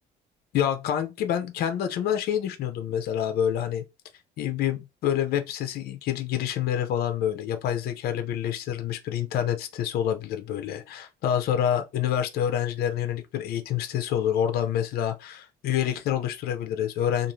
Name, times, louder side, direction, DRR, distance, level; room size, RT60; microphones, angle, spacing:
voice 1, 0.5-3.8 4.4-17.3, left 10 dB, 65° left, 0.6 m, -27 dB
2.5 x 2.4 x 3.0 m
cardioid pair, 110°, 17 cm